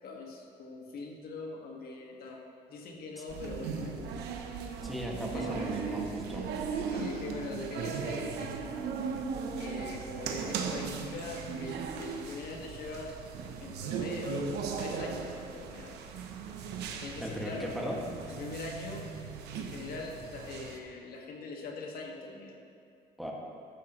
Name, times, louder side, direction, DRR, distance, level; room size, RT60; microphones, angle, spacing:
voice 1, 0.0-2.4 2.7-4.2 5.3-6.1 6.8-9.1 9.6-13.2 13.6-14.5 14.8-16.0 17.0-17.7 18.3-19.1 19.5-22.6, left 3 dB, 65° left, 0 dB, 1.9 m, -42 dB
sound 1, 3.3-20.8, right 5 dB, 85° right, 1.0 m, -37 dB
voice 2, 4.8-6.4 17.2-18.0 23.2-23.3, equal, ahead, -3 dB, 2.0 m, -37 dB
14.5 x 10.5 x 3.2 m, 2.4 s
cardioid pair, 110°, 17 cm